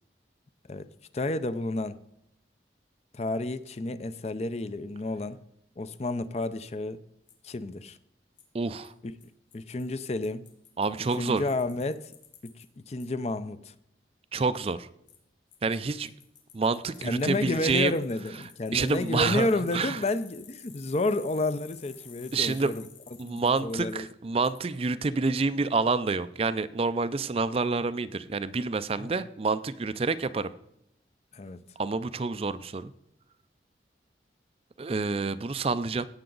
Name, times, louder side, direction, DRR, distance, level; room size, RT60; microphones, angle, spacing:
voice 1, 1.1-2.0 3.1-5.4 5.8-7.0 7.4-8.0 9.5-10.4 11.2-12.1 12.4-13.7 17.0-22.8 23.2-24.1 29.0-29.1 31.3-31.6, left 2 dB, 35° left, 0.5 m, -30 dB
Bicycle, 7.3-7.4 8.4-8.5 8.8-8.9 9.2-9.3 9.5-9.6 9.8-12.6 13.0-13.1 15.1-15.2 15.5-23.9 24.4-24.6, left 8 dB, 85° left, 2.3 m, -52 dB
voice 2, 8.5-8.9 10.8-11.4 14.3-14.9 15.6-16.1 16.5-18.0 18.7-19.5 19.7-20.0 22.3-22.7 23.2-30.5 31.8-32.9 34.8-36.1, right 4 dB, 30° right, 0.4 m, -28 dB
16.5 x 6.9 x 3.9 m
head